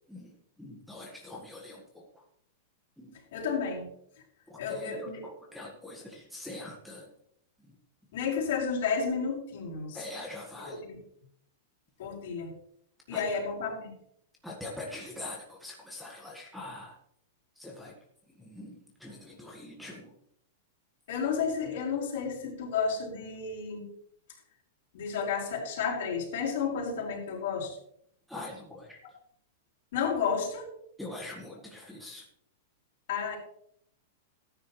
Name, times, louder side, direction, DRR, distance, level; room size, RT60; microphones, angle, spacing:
voice 1, 0.1-2.2 3.0-3.1 4.5-7.1 7.6-7.7 9.9-10.8 13.1-13.2 14.4-17.0 17.5-18.0 18.3-20.1 28.3-29.2 31.0-32.3, left 2 dB, ahead, -4 dB, 1.6 m, -44 dB
voice 2, 3.3-3.9 4.6-5.2 8.1-10.0 10.7-11.0 12.0-12.5 13.1-13.9 21.1-23.9 24.9-27.8 29.9-30.7 33.1-33.4, left 6 dB, 60° left, -3 dB, 4.5 m, -31 dB
14.0 x 9.8 x 3.2 m, 0.71 s
supercardioid pair, 155°, 0 cm